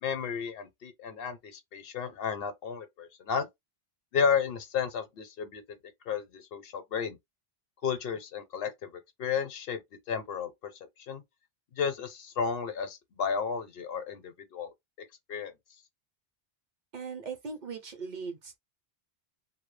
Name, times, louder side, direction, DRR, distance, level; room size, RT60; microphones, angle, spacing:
voice 1, 0.0-3.5 4.1-5.6 6.1-7.2 7.8-9.8 10.1-10.7 11.1-11.2 11.8-15.5, left 6 dB, 70° left, 0.8 m, -33 dB
voice 2, 16.9-18.6, right 5 dB, 55° right, 0.6 m, -39 dB
2.1 x 2.0 x 3.1 m
omnidirectional pair, 1.0 m